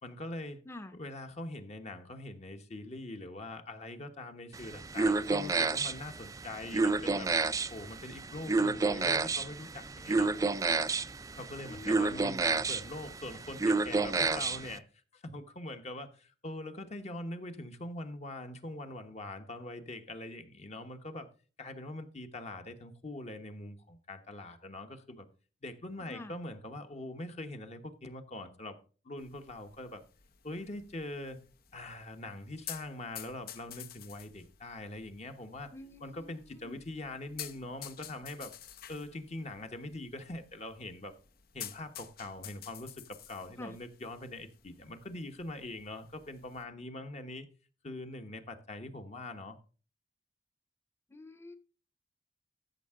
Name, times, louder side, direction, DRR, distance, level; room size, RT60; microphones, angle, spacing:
voice 1, 0.0-0.6 0.9-7.3 7.7-10.3 11.3-14.9 15.1-21.3 21.6-25.3 25.6-28.8 29.0-30.0 30.4-31.4 31.7-35.7 36.0-38.5 38.9-41.1 41.5-47.5 47.8-49.6, left 1 dB, 40° left, 1.2 m, -43 dB
voice 2, 0.6-1.0 11.6-12.5 26.1-26.4 35.7-36.8 43.6-43.7 51.1-51.6, left 2 dB, 15° left, 0.8 m, -48 dB
sound 1, 4.5-14.8, right 3 dB, 20° right, 0.4 m, -30 dB
sound 2, 29.2-46.6, left 10 dB, 55° left, 0.8 m, -51 dB
13.5 x 6.5 x 3.7 m
head